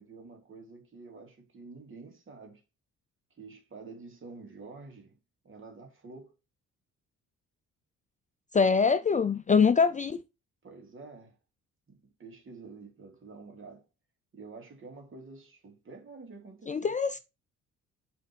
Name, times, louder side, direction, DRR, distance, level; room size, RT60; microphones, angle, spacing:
voice 1, 0.0-2.6 3.4-5.2 5.4-6.3 9.7-10.0 10.6-11.4 11.9-13.8 14.3-16.9, right 4 dB, 40° right, 3.0 m, -48 dB
voice 2, 8.5-10.2 16.7-17.2, left 5 dB, 25° left, 0.5 m, -24 dB
7.8 x 4.3 x 4.6 m
cardioid pair, 90°, 30 cm